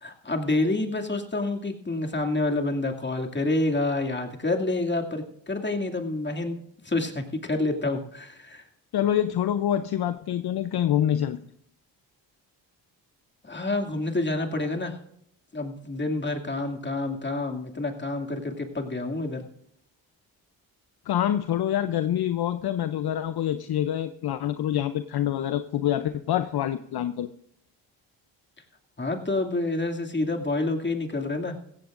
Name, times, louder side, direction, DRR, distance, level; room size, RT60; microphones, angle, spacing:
voice 1, 0.0-8.6 13.4-15.0 15.5-19.5 29.0-31.6, left 2 dB, 25° left, 3 dB, 2.5 m, -28 dB
voice 2, 8.9-11.4 21.1-27.3, left 11 dB, 60° left, 11 dB, 0.7 m, -26 dB
16.0 x 15.5 x 2.6 m, 0.72 s
supercardioid pair, 60°, 44 cm